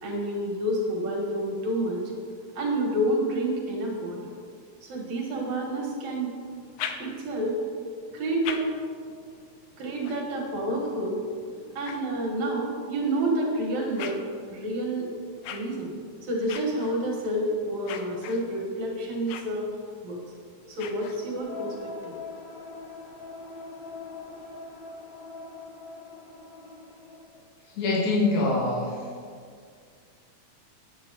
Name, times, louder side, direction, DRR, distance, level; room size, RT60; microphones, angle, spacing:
voice 1, 0.0-2.0 2.6-4.3 4.8-6.3 7.0-7.6 8.1-8.6 9.8-11.2 11.8-14.2 14.5-15.1 15.5-15.9 16.2-19.7 20.0-20.2 20.7-22.1, right 1 dB, 70° right, -1 dB, 2.8 m, -29 dB
sound 1, 6.5-7.5 8.1-12.7 13.3-21.6, left 8 dB, 85° left, 1.3 m, -43 dB
sound 2, 21.4-27.2, left 3 dB, 45° left, 1.5 m, -42 dB
voice 2, 27.6-29.1, left 2 dB, 70° left, -4 dB, 2.9 m, -25 dB
9.3 x 8.3 x 4.1 m, 2.1 s
omnidirectional pair, 3.4 m